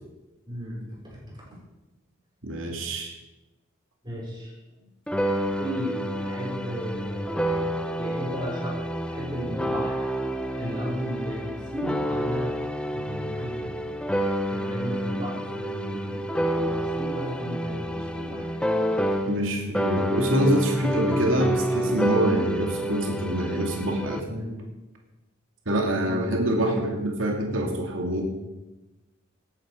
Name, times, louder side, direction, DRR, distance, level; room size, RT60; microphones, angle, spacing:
voice 1, 0.5-1.6 4.0-4.9 5.6-10.1 10.6-12.6 12.9-13.9 14.5-18.5 24.3-24.6 26.0-26.3, equal, 25° right, -4 dB, 5.7 m, -35 dB
voice 2, 2.4-3.1 19.3-24.2 25.7-28.2, right 1 dB, 75° right, 1 dB, 2.5 m, -25 dB
sound 1, 5.1-19.5 19.7-24.2, equal, 5° left, 0.9 m, -29 dB
18.0 x 11.0 x 5.1 m, 1.0 s
head